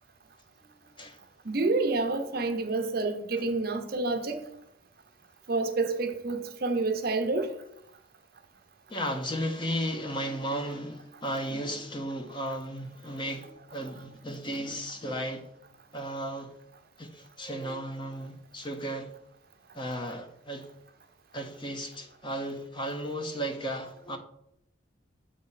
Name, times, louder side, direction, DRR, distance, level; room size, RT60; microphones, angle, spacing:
voice 1, 1.5-4.4 5.5-7.5, right 3 dB, 50° right, 0.7 m, -28 dB
voice 2, 8.9-15.4 15.9-16.5 17.0-19.1 19.7-20.7 21.3-24.2, equal, 25° left, 0.9 m, -34 dB
7.7 x 3.4 x 5.7 m
head